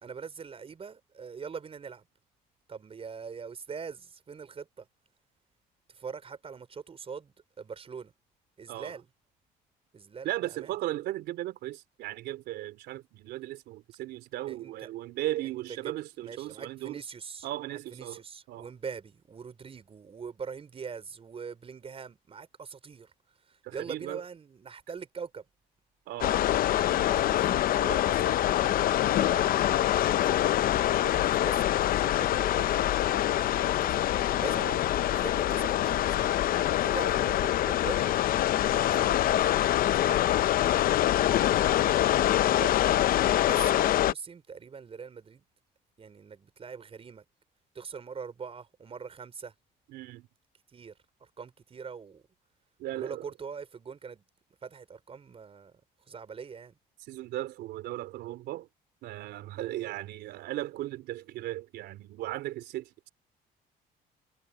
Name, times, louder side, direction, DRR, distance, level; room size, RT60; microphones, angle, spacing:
voice 1, 0.0-2.0 2.7-4.9 5.9-8.1 8.6-9.1 9.9-10.8 14.5-14.9 15.4-15.5 15.8-15.9 16.2-23.1 23.5-25.4 27.0-28.8 29.0-31.6 32.0-32.9 33.4-34.0 34.4-36.3 36.7-38.1 38.7-39.5 39.8-40.2 42.2-45.4 46.0-47.2 47.8-49.5 50.7-50.9 51.4-52.2 52.9-54.2 54.6-55.7 56.1-56.7, right 6 dB, 35° right, 5.3 m, -43 dB
voice 2, 10.2-17.0 17.4-18.2 18.5-18.7 23.6-24.2 26.1-26.5 34.4-34.8 38.9-39.2 49.9-50.3 52.8-53.3 57.1-58.7 59.0-63.1, right 15 dB, 80° right, 3.6 m, -37 dB
sound 1, 26.2-44.1, left 12 dB, 60° left, 0.6 m, -25 dB
cardioid pair, 110°, 17 cm